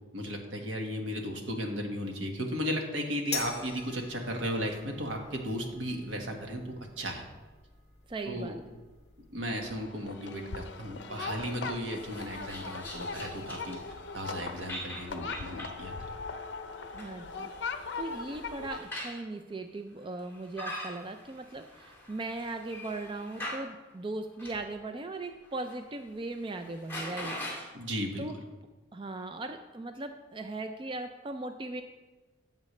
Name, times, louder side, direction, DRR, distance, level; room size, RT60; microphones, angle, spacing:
voice 1, 0.1-7.2 8.2-8.6 9.3-13.8 14.1-16.1 27.7-28.3, equal, 75° right, 2 dB, 1.5 m, -35 dB
sound 1, 3.3-9.9, left 5 dB, 35° left, 1.5 m, -45 dB
voice 2, 8.1-8.6 16.9-17.5 18.0-27.4 28.2-28.4 28.9-31.8, right 2 dB, 25° right, 7 dB, 0.4 m, -38 dB
sound 2, 9.7-18.8, left 4 dB, 65° left, 0.6 m, -40 dB
sound 3, 11.9-13.9 14.2-14.3 14.7-15.8 16.7-19.2 20.2-23.7 24.4-24.7 25.2-25.8 26.1-26.2 26.5-27.6, left 1 dB, 10° left, 2.6 m, -42 dB
13.5 x 7.4 x 3.2 m, 1.2 s
head